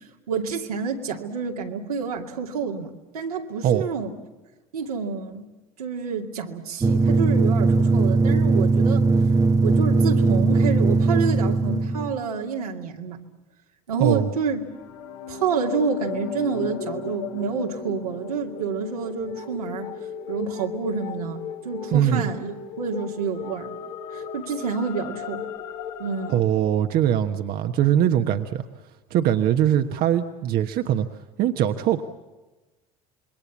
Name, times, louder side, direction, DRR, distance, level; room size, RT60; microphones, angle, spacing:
voice 1, 0.3-4.1 4.7-5.5 5.8-9.1 9.6-13.2 13.9-14.7 15.3-19.9 20.3-21.4 21.6-23.7 24.1-25.4 26.0-26.4, right 5 dB, 85° right, 1 dB, 2.5 m, -28 dB
sound 1, 6.8-12.2, right 3 dB, 20° right, 1.0 m, -19 dB
sound 2, 14.5-26.4, left 7 dB, 60° left, 1.7 m, -35 dB
voice 2, 21.9-22.3 26.3-28.6 29.1-31.1 31.4-32.0, right 10 dB, 55° right, 6 dB, 1.2 m, -21 dB
27.0 x 21.5 x 7.3 m, 1.2 s
hypercardioid pair, 75°, 19 cm